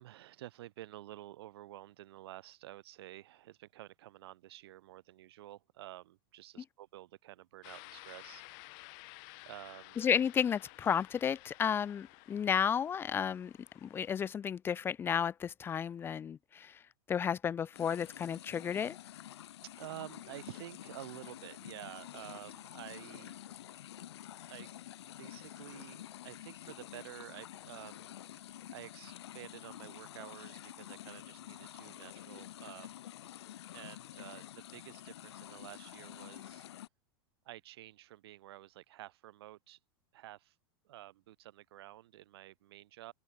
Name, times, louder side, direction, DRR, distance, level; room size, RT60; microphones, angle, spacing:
voice 1, 0.0-8.4 9.5-10.0 19.6-23.3 24.5-24.7 25.2-33.1 33.7-36.6 37.4-39.8 40.1-40.5 40.8-43.1, right 15 dB, 75° right, 3.0 m, -50 dB
sound 1, 7.6-14.3, left 40 dB or more, 50° left, 7.6 m, -54 dB
voice 2, 10.0-13.5 13.8-16.8 17.1-19.0, left 8 dB, 15° left, 0.4 m, -32 dB
sound 2, 17.7-36.9, left 12 dB, 90° left, 0.9 m, -49 dB
open air
supercardioid pair, 140°, 13 cm